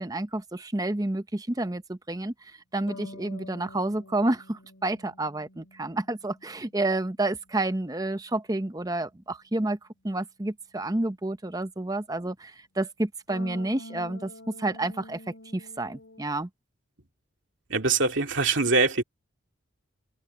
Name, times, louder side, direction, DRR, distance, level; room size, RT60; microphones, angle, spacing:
voice 1, 0.0-2.3 2.7-9.8 10.0-15.2 15.5-16.5, right 2 dB, 15° right, 0.7 m, -29 dB
sound 1, 2.9-7.4 13.3-16.3, left 1 dB, 70° left, 2.7 m, -47 dB
voice 2, 17.7-19.0, right 3 dB, 65° right, 2.4 m, -23 dB
open air
head